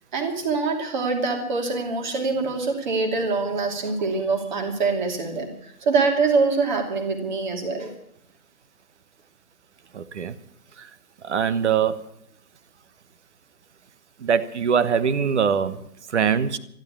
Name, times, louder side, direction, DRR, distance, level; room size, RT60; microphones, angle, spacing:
voice 1, 0.1-7.9, right 4 dB, 30° right, 4 dB, 2.7 m, -24 dB
voice 2, 9.9-10.4 10.8-10.9 11.2-12.1 14.2-16.6, right 7 dB, 50° right, 14 dB, 1.1 m, -23 dB
13.0 x 12.0 x 8.5 m, 0.72 s
hypercardioid pair, 175°, 45 cm